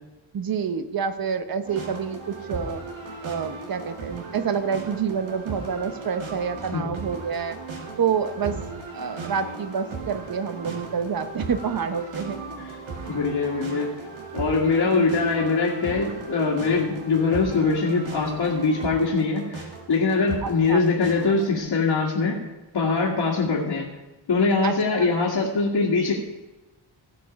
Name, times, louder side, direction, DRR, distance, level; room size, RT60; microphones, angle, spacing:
voice 1, 0.3-2.8 3.2-7.6 8.0-8.6 8.9-12.4 15.0-15.1 20.4-20.8 24.6-25.1, right 6 dB, 50° right, 10 dB, 0.9 m, -28 dB
sound 1, 1.6-21.6, right 4 dB, 80° right, 2.3 m, -37 dB
voice 2, 13.1-13.9 14.3-23.9 24.3-26.1, left 4 dB, 60° left, -5 dB, 2.1 m, -23 dB
17.0 x 5.9 x 5.2 m, 1.1 s
wide cardioid pair, 125°, 47 cm